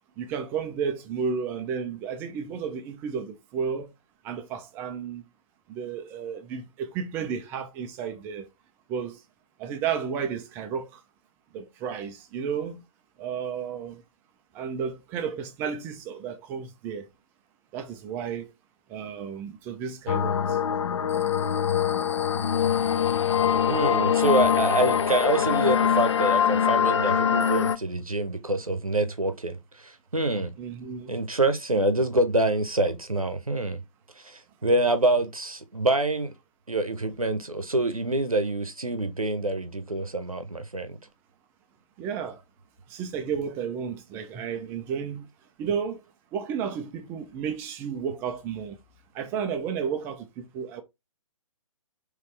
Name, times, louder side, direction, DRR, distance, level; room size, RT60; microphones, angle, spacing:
voice 1, 0.2-3.9 4.2-5.2 5.7-8.5 8.9-9.2 9.6-11.0 11.5-12.8 13.2-14.0 14.5-17.1 17.7-18.5 18.9-20.6 30.6-31.1 42.0-42.4 42.9-45.3 45.6-46.0 46.3-48.8 49.1-50.8, right 7 dB, 10° right, 0.4 m, -32 dB
sound 1, 20.1-27.8, left 8 dB, 55° left, 0.4 m, -23 dB
voice 2, 23.7-30.5 31.1-33.8 34.2-36.3 36.7-41.0, right 2 dB, 85° right, 0.8 m, -26 dB
4.0 x 3.1 x 3.2 m
figure-of-eight pair, 130°, 18 cm